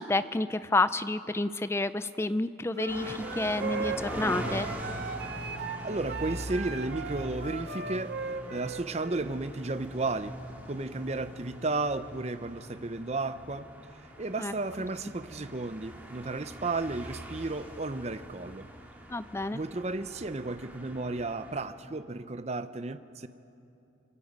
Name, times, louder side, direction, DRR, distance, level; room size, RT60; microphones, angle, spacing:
voice 1, 0.0-4.7 14.4-14.5 19.1-19.6, left 2 dB, 15° left, 14 dB, 0.4 m, -29 dB
sound 1, 2.7-9.2, right 4 dB, 55° right, 1.1 m, -37 dB
sound 2, 2.9-21.6, equal, 10° right, 2.2 m, -42 dB
voice 2, 5.8-8.2 8.5-10.4 10.7-13.7 14.2-18.7 19.5-23.3, right 3 dB, 35° right, 12 dB, 0.6 m, -33 dB
24.5 x 23.5 x 5.4 m, 2.7 s
head